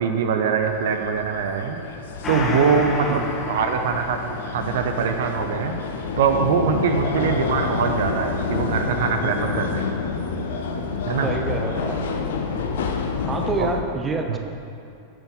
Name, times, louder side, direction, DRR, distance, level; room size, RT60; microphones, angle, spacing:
voice 1, 0.0-1.8 2.3-5.7 6.2-9.9 11.1-11.3 13.6-13.7 14.3-14.4, right 6 dB, 55° right, 5 dB, 0.6 m, -23 dB
sound 1, 0.6-13.8, left 4 dB, 60° left, 0.8 m, -28 dB
Gong, 2.2-11.2 11.5-11.6, left 3 dB, 25° left, 1.0 m, -35 dB
voice 2, 11.2-12.0 13.3-14.4, right 3 dB, 15° right, 4 dB, 0.8 m, -27 dB
8.1 x 7.2 x 5.4 m, 2.7 s
figure-of-eight pair, 90°, 0 cm